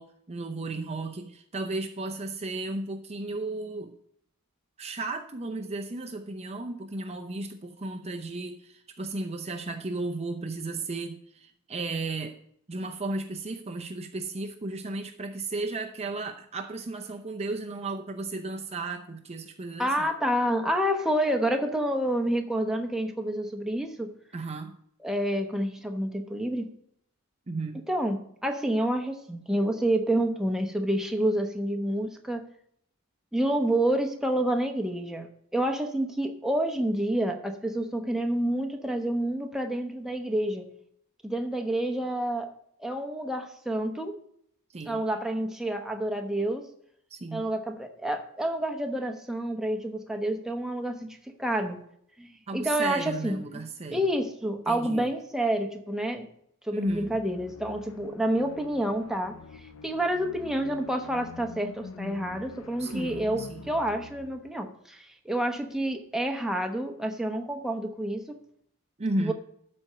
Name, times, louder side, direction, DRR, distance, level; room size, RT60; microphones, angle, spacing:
voice 1, 0.0-3.9 4.8-12.3 12.7-20.1 24.3-24.8 27.5-27.8 44.7-45.0 47.1-47.5 52.5-54.0 54.7-55.1 56.7-57.1 62.8-63.6 69.0-69.3, right 2 dB, 30° right, 4 dB, 0.7 m, -34 dB
voice 2, 19.8-24.1 25.0-26.7 27.9-32.4 33.3-40.7 41.2-42.5 42.8-44.2 44.9-46.7 47.3-51.8 52.2-53.4 53.9-56.3 56.6-68.4 69.2-69.3, right 1 dB, ahead, 3 dB, 1.0 m, -28 dB
sound 1, 56.8-64.5, left 4 dB, 85° left, 0.7 m, -46 dB
12.5 x 4.4 x 6.6 m, 0.67 s
head